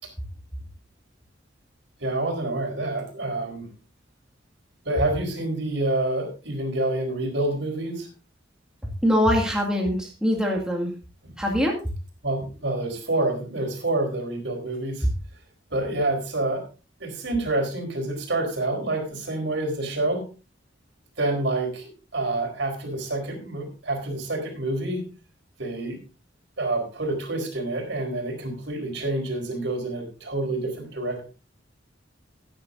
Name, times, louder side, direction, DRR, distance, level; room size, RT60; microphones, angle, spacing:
voice 1, 2.0-3.7 4.8-8.1 11.2-11.4 12.2-15.1 15.7-16.6 17.0-20.2 21.2-25.0 25.6-26.0 26.6-31.2, right 2 dB, 65° right, 3 dB, 4.3 m, -27 dB
voice 2, 9.0-10.9 11.4-11.8, equal, 5° right, -1 dB, 2.1 m, -23 dB
17.0 x 9.7 x 2.6 m, 0.33 s
head